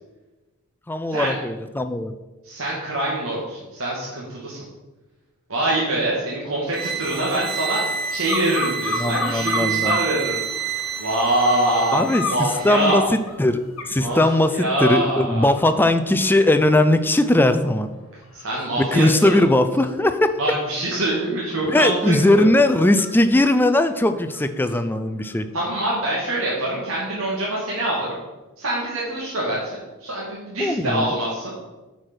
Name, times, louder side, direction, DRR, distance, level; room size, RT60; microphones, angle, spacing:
voice 1, 0.9-2.1 9.0-10.0 11.9-12.2 12.6-13.6 13.9-17.9 18.8-20.4 21.7-25.5 30.6-31.1, left 1 dB, 10° left, 9 dB, 0.4 m, -19 dB
voice 2, 2.4-4.6 5.5-10.3 11.0-13.0 14.0-15.5 18.3-19.5 20.4-22.5 25.5-28.1 28.6-29.7 30.0-31.5, right 1 dB, 70° right, -5 dB, 1.9 m, -24 dB
sound 1, 6.7-13.1, right 7 dB, 45° right, 0.7 m, -29 dB
sound 2, 8.3-10.1 10.5-11.2 12.1-14.4 14.9-15.1 15.5-24.8 25.2-25.3, left 4 dB, 85° left, 1.8 m, -34 dB
8.5 x 4.9 x 6.0 m, 1.1 s
head